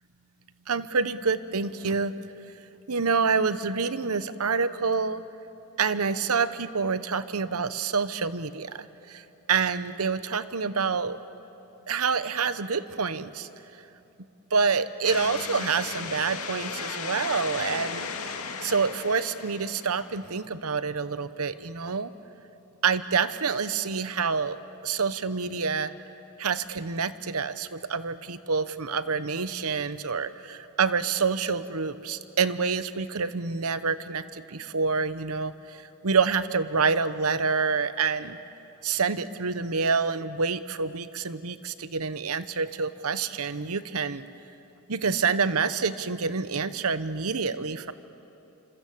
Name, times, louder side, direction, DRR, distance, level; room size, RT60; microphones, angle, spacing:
voice 1, 0.7-2.1 2.9-5.2 5.8-9.2 9.5-11.2 11.9-13.5 14.5-18.1 18.6-22.1 22.8-25.9 26.4-38.4 38.8-44.3 44.9-47.9, right 5 dB, 80° right, 13 dB, 1.0 m, -27 dB
sound 1, 15.0-20.2, left 5 dB, 75° left, 2.3 m, -35 dB
26.5 x 26.5 x 8.5 m, 2.9 s
head